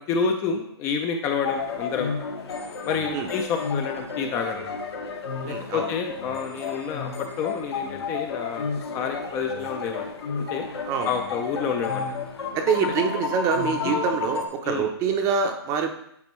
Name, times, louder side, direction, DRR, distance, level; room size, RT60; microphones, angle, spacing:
voice 1, 0.1-2.1 2.8-4.7 5.4-10.1 10.4-10.7 11.0-12.2 13.8-14.0 14.6-14.9, left 6 dB, 20° left, 5 dB, 0.4 m, -29 dB
sound 1, 1.4-14.5, left 4 dB, 70° left, 1.3 m, -31 dB
voice 2, 5.5-5.9 10.9-11.2 12.5-15.9, right 6 dB, 25° right, 5 dB, 0.6 m, -25 dB
8.6 x 4.3 x 3.1 m, 0.74 s
hypercardioid pair, 145°, 14 cm